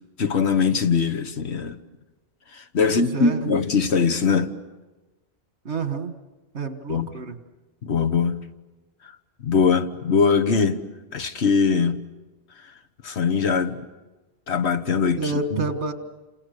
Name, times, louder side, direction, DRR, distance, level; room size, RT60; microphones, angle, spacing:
voice 1, 0.2-1.8 2.5-4.5 6.9-7.1 7.8-8.4 9.4-10.8 11.1-12.0 13.0-13.8 14.5-15.6, left 5 dB, 75° left, 1.5 m, -21 dB
voice 2, 2.8-3.5 5.7-6.1 6.5-7.4 15.2-15.9, right 3 dB, 80° right, 1.9 m, -29 dB
30.0 x 28.0 x 6.7 m
omnidirectional pair, 1.1 m